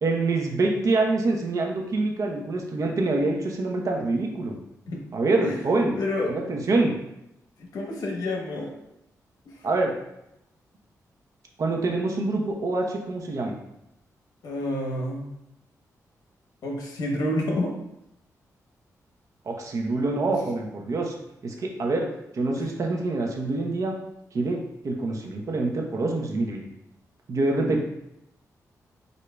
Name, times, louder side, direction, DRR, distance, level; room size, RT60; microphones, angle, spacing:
voice 1, 0.0-4.6 5.1-6.0 6.3-7.0 9.6-9.9 11.6-13.5 19.4-21.1 21.4-23.9 24.3-24.6 24.8-26.7 27.3-27.8, right 2 dB, 60° right, 1 dB, 0.9 m, -25 dB
voice 2, 5.9-6.3 7.6-8.7 9.4-9.5 14.4-15.3 16.6-17.7 22.6-22.7, left 1 dB, 85° left, 0 dB, 1.0 m, -29 dB
8.1 x 2.8 x 2.3 m, 0.84 s
cardioid pair, 95°, 6 cm